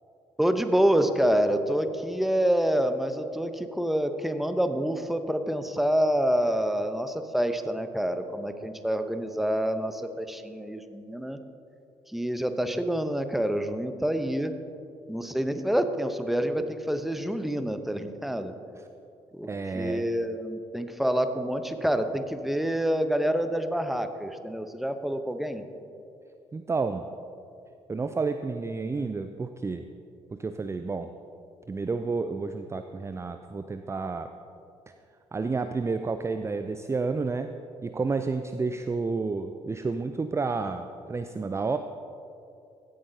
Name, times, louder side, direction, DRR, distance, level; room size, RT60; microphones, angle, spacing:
voice 1, 0.4-11.4 12.1-14.5 15.1-18.5 19.3-25.6, equal, ahead, 8 dB, 0.8 m, -27 dB
voice 2, 19.5-20.1 26.5-27.0 27.9-29.8 30.3-31.1 31.7-34.3 35.3-37.5 37.8-41.8, right 4 dB, 20° right, 9 dB, 0.4 m, -30 dB
16.0 x 8.6 x 2.8 m, 2.6 s
hypercardioid pair, 45°, 15 cm